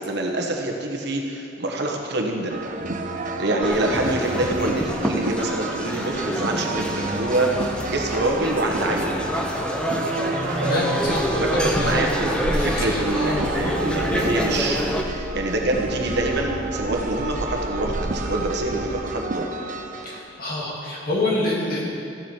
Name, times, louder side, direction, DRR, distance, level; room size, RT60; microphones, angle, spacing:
voice 1, 0.0-2.6 3.4-9.2 10.6-10.9 11.2-12.3 12.5-19.5, right 2 dB, 60° right, 1 dB, 1.2 m, -26 dB
sound 1, 2.5-20.2, right 3 dB, 45° right, 0.7 m, -31 dB
sound 2, 3.6-15.0, equal, 5° left, 0.7 m, -27 dB
voice 2, 10.6-12.0 12.5-13.4 20.0-21.9, left 2 dB, 50° left, -4 dB, 2.3 m, -27 dB
sound 3, 11.0-19.0, right 1 dB, 80° right, 1.0 m, -34 dB
14.5 x 7.5 x 4.5 m, 2.5 s
head